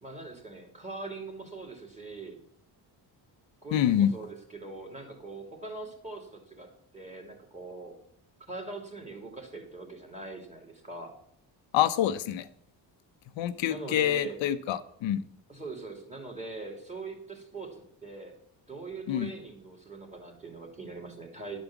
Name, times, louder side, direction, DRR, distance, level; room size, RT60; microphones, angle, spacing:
voice 1, 0.0-2.4 3.6-6.7 6.9-7.9 8.5-11.2 13.7-14.4 15.5-18.3 18.7-21.6, right 3 dB, 15° right, 2 dB, 2.8 m, -42 dB
voice 2, 3.7-4.1 11.7-12.5 13.4-15.2 19.1-19.3, left 10 dB, 85° left, 10 dB, 0.8 m, -26 dB
11.0 x 5.2 x 7.1 m, 0.69 s
cardioid pair, 105°, 45 cm